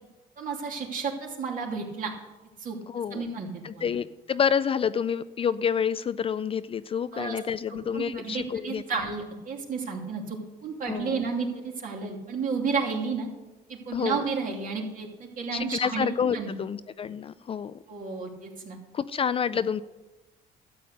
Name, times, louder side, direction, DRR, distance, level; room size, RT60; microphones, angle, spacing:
voice 1, 0.4-2.1 2.6-2.8 3.1-3.9 7.1-7.4 7.9-13.3 13.7-16.5 17.9-18.8, right 5 dB, 50° right, 0 dB, 2.8 m, -32 dB
voice 2, 2.9-3.3 3.6-9.1 10.9-11.2 13.9-14.3 15.5-17.7 18.9-19.8, left 7 dB, 35° left, 15 dB, 0.4 m, -28 dB
12.5 x 8.4 x 6.5 m, 1.1 s
cardioid pair, 110°, 17 cm